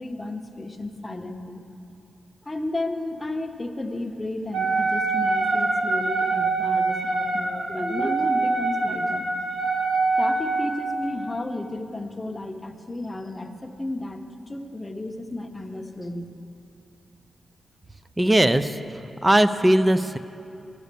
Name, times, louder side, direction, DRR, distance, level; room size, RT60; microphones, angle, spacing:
voice 1, 0.0-1.6 2.4-9.2 10.2-14.2 14.5-16.3, left 2 dB, 15° left, 4 dB, 0.9 m, -33 dB
Wind instrument woodwind instrument, 4.5-11.0, right 3 dB, 70° right, 1.7 m, -24 dB
voice 2, 18.2-18.8 19.2-20.2, right 1 dB, 15° right, 11 dB, 0.5 m, -19 dB
13.5 x 9.9 x 6.8 m, 2.7 s
wide cardioid pair, 115°, 0 cm